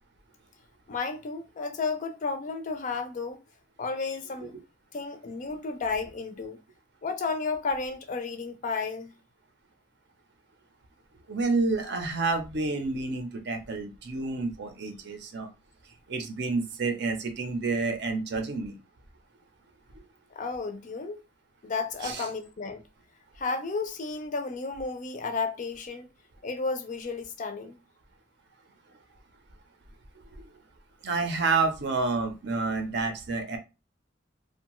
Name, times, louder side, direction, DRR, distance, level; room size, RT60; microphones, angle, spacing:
voice 1, 0.9-3.4 3.8-4.6 4.9-6.6 7.0-9.1 20.3-21.2 21.6-22.8 23.4-26.1 26.4-27.8, left 4 dB, 40° left, 0.4 m, -32 dB
voice 2, 11.3-15.5 16.1-18.8 22.0-22.2 30.4-30.5 31.0-33.6, right 3 dB, 60° right, 0.6 m, -29 dB
2.6 x 2.2 x 2.9 m
head